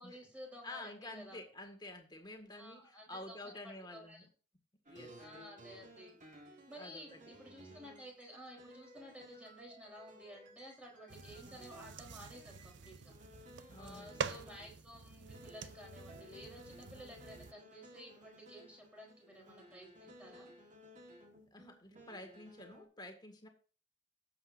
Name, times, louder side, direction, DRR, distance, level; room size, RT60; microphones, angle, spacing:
voice 1, 0.0-1.4 2.5-3.4 3.6-4.3 5.2-6.2 6.7-13.1 13.8-20.5, equal, 5° right, -1 dB, 3.8 m, -53 dB
voice 2, 0.6-4.3 4.9-5.4 6.8-7.0 13.7-14.3 20.0-20.1 21.5-23.5, left 2 dB, 25° left, 4 dB, 1.9 m, -50 dB
sound 1, 4.9-14.9 15.2-22.9, equal, 40° right, 2.1 m, -57 dB
sound 2, 11.1-17.5, right 5 dB, 70° right, 0.6 m, -47 dB
18.5 x 7.8 x 2.6 m, 0.38 s
head